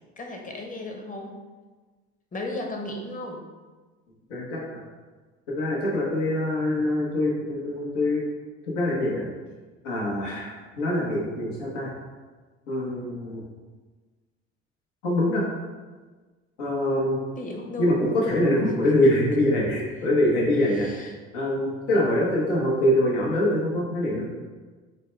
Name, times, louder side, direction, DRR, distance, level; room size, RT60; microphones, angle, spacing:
voice 1, 0.2-1.3 2.3-3.4 17.4-18.1 19.0-19.1 19.7-19.9 20.7-21.2, left 2 dB, 25° left, 2 dB, 0.9 m, -35 dB
voice 2, 4.3-4.8 5.5-8.2 8.6-9.2 9.8-11.9 12.7-13.4 15.0-15.4 16.6-17.2 17.8-20.9 21.3-24.3, left 1 dB, 75° left, -4 dB, 1.2 m, -24 dB
6.7 x 2.2 x 3.3 m, 1.4 s
hypercardioid pair, 75°, 35 cm